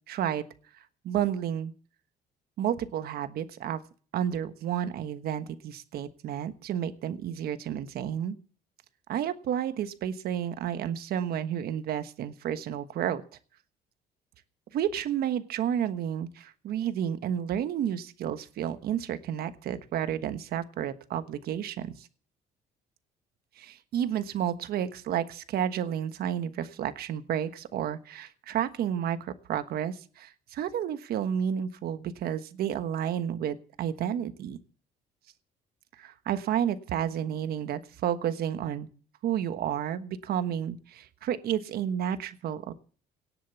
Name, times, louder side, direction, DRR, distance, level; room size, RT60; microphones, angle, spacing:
voice 1, 0.1-0.4 1.0-1.7 2.6-3.8 4.1-8.4 9.1-13.2 14.7-22.1 23.6-34.6 36.0-38.9 39.2-42.7, right 9 dB, 65° right, 11 dB, 1.3 m, -31 dB
18.0 x 7.6 x 6.9 m, 0.42 s
cardioid pair, 110°, 17 cm